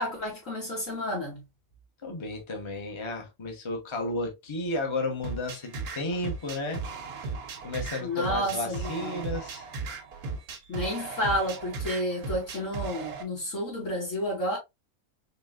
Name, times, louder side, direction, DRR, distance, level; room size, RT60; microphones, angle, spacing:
voice 1, 0.0-1.4 8.0-9.2 10.7-14.6, equal, 65° left, 2.1 m, -31 dB
voice 2, 2.0-6.8 7.6-9.7, left 2 dB, 25° left, 0.9 m, -33 dB
sound 1, 5.2-13.2, right 4 dB, 90° right, 1.4 m, -36 dB
4.2 x 3.6 x 2.4 m
omnidirectional pair, 1.5 m